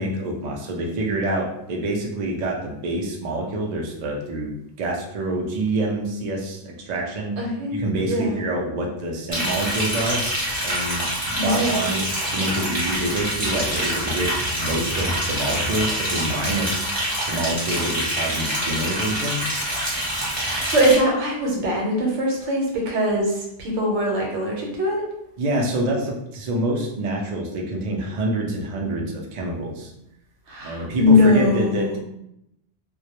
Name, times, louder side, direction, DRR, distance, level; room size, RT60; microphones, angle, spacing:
voice 1, 0.0-7.3 7.7-10.2 10.6-14.3 14.6-16.9 17.3-19.4 25.4-29.9 30.6-32.0, right 1 dB, 65° right, 0 dB, 0.4 m, -26 dB
voice 2, 7.4-7.7 8.0-8.4 11.4-11.9 20.3-25.0 30.5-32.0, left 1 dB, 80° right, -1 dB, 1.0 m, -21 dB
Liquid, 9.3-20.9, equal, 10° right, 0.8 m, -26 dB
2.2 x 2.0 x 2.7 m, 0.81 s
omnidirectional pair, 1.2 m